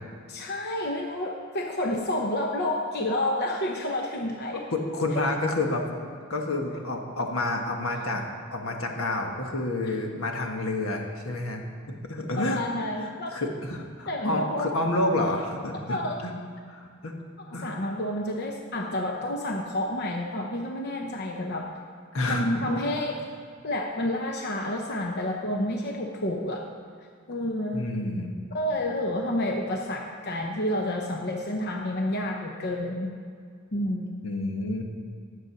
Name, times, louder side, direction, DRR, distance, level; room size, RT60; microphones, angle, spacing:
voice 1, 0.3-4.7 5.1-5.3 9.8-10.0 12.4-13.3 14.1-14.7 15.9-16.2 17.5-21.7 22.3-23.2 23.6-26.6 27.3-27.9 28.5-33.1 33.7-34.1, left 1 dB, 50° left, 1 dB, 0.8 m, -29 dB
voice 2, 4.7-5.9 6.3-8.2 8.5-12.6 13.0-16.3 16.7-17.1 17.5-17.7 22.1-22.5 27.7-28.3 34.2-34.8, left 2 dB, 80° left, 2 dB, 1.4 m, -29 dB
11.0 x 7.8 x 5.8 m, 2.1 s
head